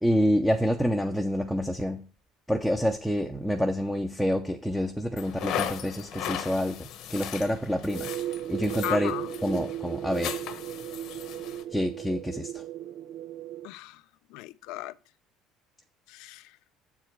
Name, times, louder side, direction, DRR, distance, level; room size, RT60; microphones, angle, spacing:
voice 1, 0.0-2.0 2.5-6.8 7.1-8.1 8.5-9.1 9.4-10.4 11.7-12.6, equal, ahead, 0.7 m, -27 dB
sound 1, 5.2-11.6, left 10 dB, 60° left, 1.0 m, -37 dB
sound 2, 7.9-13.7, right 12 dB, 55° right, 0.4 m, -36 dB
voice 2, 8.8-9.4 13.6-14.0 14.3-15.0 16.1-16.5, left 16 dB, 80° left, 0.5 m, -36 dB
7.9 x 4.9 x 6.0 m
cardioid pair, 135°, 0 cm